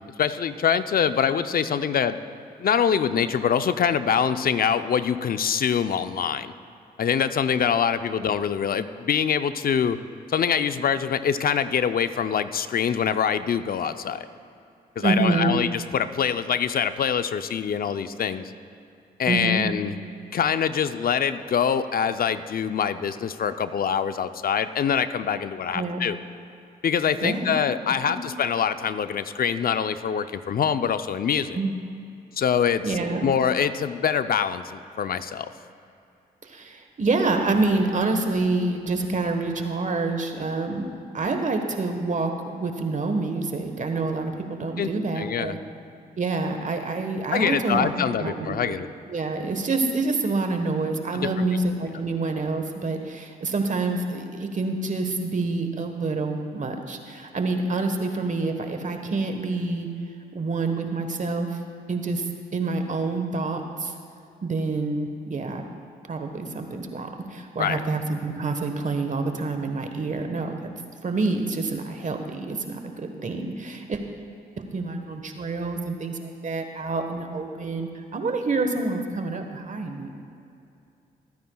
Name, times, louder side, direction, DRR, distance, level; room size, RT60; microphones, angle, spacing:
voice 1, 0.2-2.2 2.6-6.5 7.0-10.0 10.3-14.3 15.0-18.5 19.2-19.9 20.3-26.2 26.8-31.6 32.4-35.5 44.8-45.6 47.3-48.9 51.1-51.3 67.6-67.8, left 7 dB, 60° left, 11 dB, 0.6 m, -24 dB
voice 2, 15.0-15.5 19.3-19.7 25.7-26.0 27.2-27.5 28.1-28.2 31.5-31.7 32.8-33.4 36.4-45.6 46.2-48.7 49.1-59.9 60.3-61.6 61.9-62.2 62.5-63.9 64.4-65.6 66.1-70.5 71.0-74.0 74.6-80.1, right 3 dB, 45° right, 5 dB, 1.3 m, -27 dB
24.0 x 9.5 x 2.3 m, 2.6 s
supercardioid pair, 50°, 18 cm